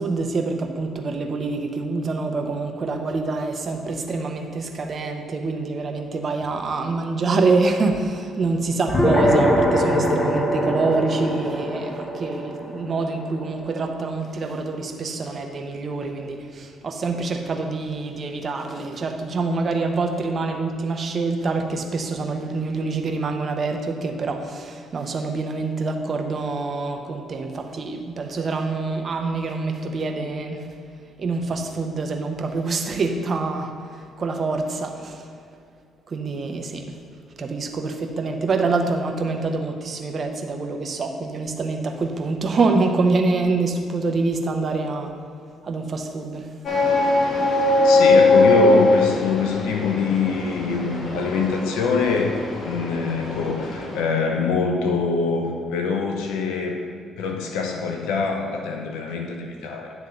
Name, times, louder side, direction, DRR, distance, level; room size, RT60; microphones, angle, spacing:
voice 1, 0.0-30.7 31.2-35.3 36.1-37.0 37.4-45.1 45.6-46.5, right 3 dB, 45° right, 4 dB, 0.9 m, -26 dB
sound 1, 8.9-13.7, equal, 30° left, 1.7 m, -22 dB
sound 2, 46.7-54.0, left 2 dB, 55° left, 1.6 m, -20 dB
voice 2, 47.8-52.3 52.6-56.8 57.2-59.9, left 5 dB, 75° left, 3 dB, 0.8 m, -24 dB
9.6 x 3.5 x 6.8 m, 2.3 s
hypercardioid pair, 50°, 0 cm